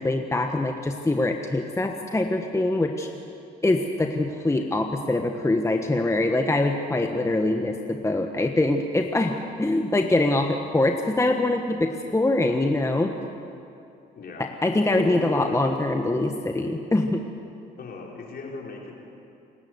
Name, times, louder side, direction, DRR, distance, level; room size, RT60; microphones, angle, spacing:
voice 1, 0.0-3.1 3.6-13.2 14.4-17.2, left 2 dB, 15° left, 4 dB, 1.3 m, -24 dB
voice 2, 14.1-14.5 14.9-15.7 17.8-18.9, left 3 dB, 55° left, -2 dB, 4.7 m, -37 dB
27.5 x 12.0 x 8.1 m, 2.7 s
supercardioid pair, 75°, 19 cm